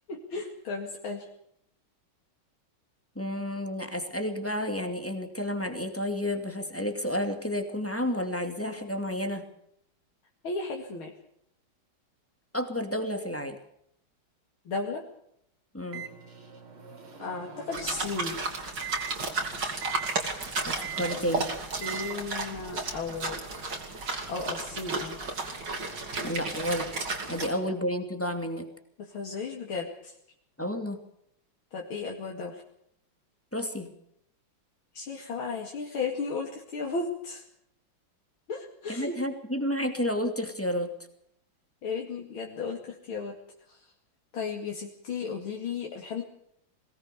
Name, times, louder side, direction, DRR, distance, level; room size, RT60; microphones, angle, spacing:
voice 1, 0.1-1.3 10.4-11.1 14.7-15.0 17.2-18.4 21.8-23.4 24.3-25.2 29.0-30.1 31.7-32.6 34.9-37.4 38.5-39.2 41.8-43.3 43.7-43.8 44.3-46.2, left 4 dB, 75° left, 0 dB, 3.1 m, -34 dB
voice 2, 3.2-9.4 12.5-13.6 15.7-16.1 20.7-21.5 26.2-26.9 27.3-28.7 30.6-31.0 33.5-33.9 38.9-40.9, left 1 dB, 5° left, 6 dB, 2.5 m, -31 dB
Microwave oven, 15.9-18.2 18.8-19.1 19.8-20.1 20.8-21.2 21.8-22.1, right 8 dB, 80° right, 3.8 m, -40 dB
sound 1, 17.7-27.5, right 3 dB, 55° right, 3.6 m, -33 dB
22.0 x 18.5 x 7.0 m, 0.73 s
omnidirectional pair, 2.3 m